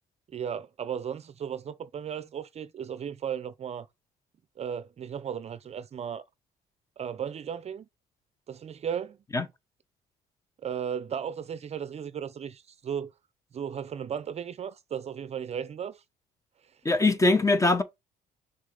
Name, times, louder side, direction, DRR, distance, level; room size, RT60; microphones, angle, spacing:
voice 1, 0.3-3.9 4.6-6.2 7.0-7.8 8.5-9.2 10.6-13.1 13.5-16.0, right 8 dB, 40° right, 0.6 m, -35 dB
voice 2, 16.8-17.8, left 2 dB, 20° left, 1.1 m, -22 dB
6.3 x 3.8 x 3.9 m
cardioid pair, 110°, 17 cm